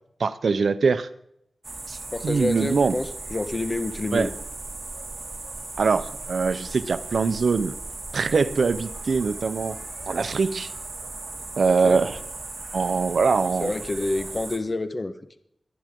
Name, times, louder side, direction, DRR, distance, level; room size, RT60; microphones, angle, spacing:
voice 1, 0.2-1.1 1.9-3.0 4.1-4.3 5.8-7.8 8.1-9.8 10.1-10.7 11.6-12.2 12.7-13.7, right 4 dB, 80° right, 13 dB, 0.8 m, -23 dB
sound 1, 1.6-14.6, right 3 dB, 45° right, 2.7 m, -37 dB
voice 2, 2.1-4.3 11.8-12.0 13.6-15.1, left 2 dB, 40° left, 10 dB, 1.3 m, -28 dB
23.5 x 10.5 x 3.8 m, 0.74 s
cardioid pair, 60°, 0 cm